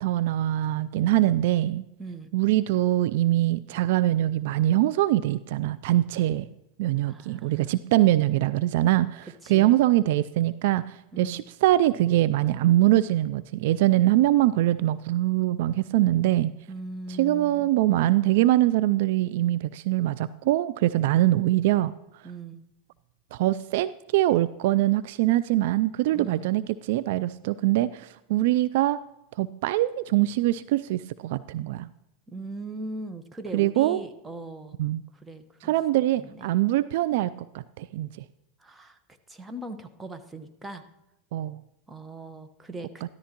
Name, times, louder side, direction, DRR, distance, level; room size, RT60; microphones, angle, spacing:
voice 1, 0.0-1.8 2.3-6.5 6.8-16.5 17.2-21.9 23.3-29.0 29.4-31.9 33.5-34.0 34.8-35.0 35.6-38.1 41.3-41.6, right 15 dB, 65° right, 16 dB, 0.3 m, -23 dB
voice 2, 2.0-2.3 7.0-7.6 9.4-9.7 11.1-11.4 16.7-17.7 22.2-22.6 26.1-26.4 32.3-34.8 35.1-35.7 36.2-36.5 38.6-39.0 39.3-40.8 41.9-43.0, right 2 dB, 15° right, 8 dB, 1.1 m, -39 dB
13.5 x 13.5 x 2.9 m, 0.91 s
hypercardioid pair, 95°, 0 cm